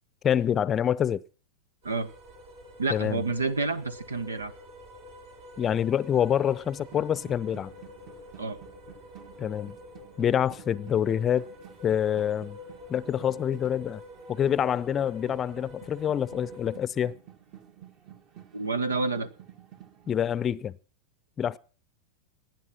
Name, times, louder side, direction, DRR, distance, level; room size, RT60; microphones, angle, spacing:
voice 1, 0.2-1.2 2.9-3.2 5.6-7.7 9.4-9.8 10.2-11.5 11.8-12.6 12.9-14.0 14.3-17.1 20.1-20.7 21.4-21.6, left 9 dB, 30° left, 0.6 m, -26 dB
sound 1, 1.8-16.8, left 2 dB, 65° right, 6.2 m, -47 dB
voice 2, 2.8-4.5 8.4-8.6 18.5-19.3, right 3 dB, 85° right, 1.2 m, -29 dB
sound 2, 5.6-20.2, right 10 dB, 45° right, 2.1 m, -52 dB
18.5 x 9.3 x 5.8 m
hypercardioid pair, 95°, 0 cm